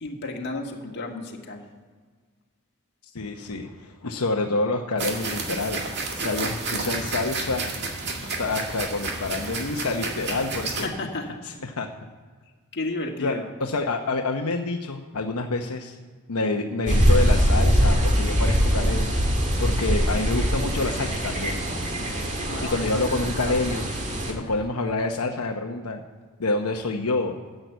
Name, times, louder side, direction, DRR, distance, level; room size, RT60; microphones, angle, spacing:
voice 1, 0.0-1.6 10.8-11.4 12.7-13.5 22.5-23.1 24.4-24.6, left 2 dB, 50° left, 1 dB, 1.8 m, -33 dB
voice 2, 3.1-5.8 6.2-7.7 8.2-10.9 11.4-11.9 13.2-16.0 16.3-19.2 19.6-21.6 22.6-23.8 24.3-26.0 26.4-27.3, left 3 dB, 85° left, 3 dB, 0.9 m, -27 dB
sound 1, 5.0-10.9, right 3 dB, 50° right, 1.9 m, -31 dB
sound 2, 16.9-24.3, equal, 35° right, 1.9 m, -22 dB
10.5 x 7.9 x 8.1 m, 1.5 s
head